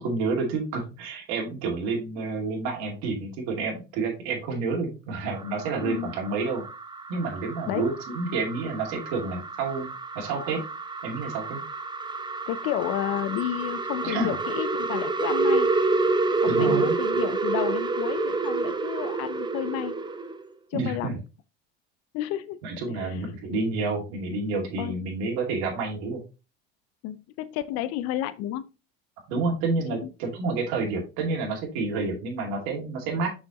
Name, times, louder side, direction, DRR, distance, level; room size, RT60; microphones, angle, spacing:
voice 1, 0.0-6.6 7.1-9.9 10.1-10.6 11.0-11.6 14.0-14.3 16.5-17.0 20.7-21.2 22.6-26.2 29.3-33.3, right 3 dB, 65° right, 2.4 m, -29 dB
sound 1, 5.3-20.4, right 3 dB, 15° right, 0.7 m, -28 dB
voice 2, 5.8-6.1 7.7-7.9 12.5-15.7 16.4-20.0 20.7-21.2 22.1-22.6 22.9-23.3 24.8-25.0 27.0-28.7 29.9-30.1, left 12 dB, 55° left, 0.6 m, -31 dB
6.2 x 5.7 x 3.0 m
hypercardioid pair, 85°, 30 cm